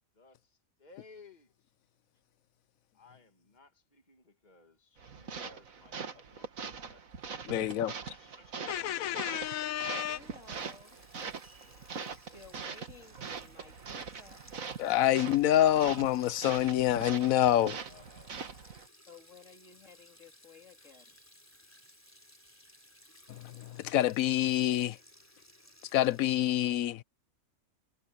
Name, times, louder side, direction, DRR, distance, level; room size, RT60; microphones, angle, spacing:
voice 1, 0.1-1.7 2.9-9.4 17.9-18.4, left 4 dB, 30° left, 2.4 m, -59 dB
sound 1, 5.0-18.9, right 5 dB, 70° right, 2.0 m, -43 dB
voice 2, 7.5-7.9 8.7-10.2 14.8-17.8 23.3-25.0 25.9-27.0, left 12 dB, 75° left, 1.1 m, -27 dB
Sink (filling or washing), 9.8-26.5, left 1 dB, 10° left, 3.5 m, -59 dB
voice 3, 9.9-11.0 11.3-14.4 19.1-21.2, left 4 dB, 60° left, 3.6 m, -55 dB
omnidirectional pair, 1.5 m